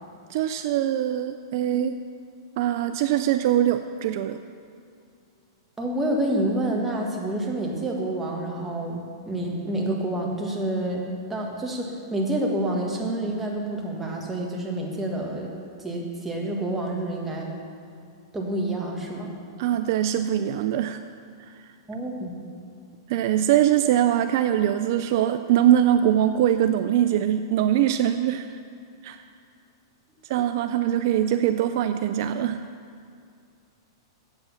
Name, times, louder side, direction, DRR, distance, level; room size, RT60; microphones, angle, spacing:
voice 1, 0.3-2.0 2.6-4.4 19.6-21.0 23.1-28.5 29.0-29.2 30.3-32.6, right 11 dB, 55° right, 9 dB, 0.3 m, -22 dB
voice 2, 5.8-9.0 9.3-11.0 11.3-15.5 15.8-17.5 18.3-19.4 21.9-22.4, right 1 dB, 10° right, -1 dB, 1.6 m, -28 dB
8.0 x 7.8 x 5.8 m, 2.4 s
hypercardioid pair, 120°, 2 cm